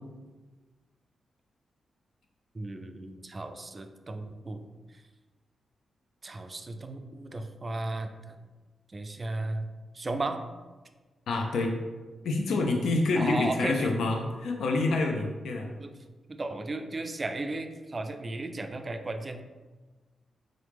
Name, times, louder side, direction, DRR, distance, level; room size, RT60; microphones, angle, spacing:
voice 1, 2.5-4.6 6.2-8.3 8.9-9.7 9.9-10.4 13.2-13.9 15.8-15.9 16.3-19.4, right 2 dB, 30° right, 7 dB, 0.3 m, -35 dB
voice 2, 11.3-11.7 12.2-15.7, left 3 dB, 85° left, 2 dB, 0.4 m, -27 dB
3.7 x 3.1 x 3.3 m, 1.3 s
cardioid pair, 105°, 0 cm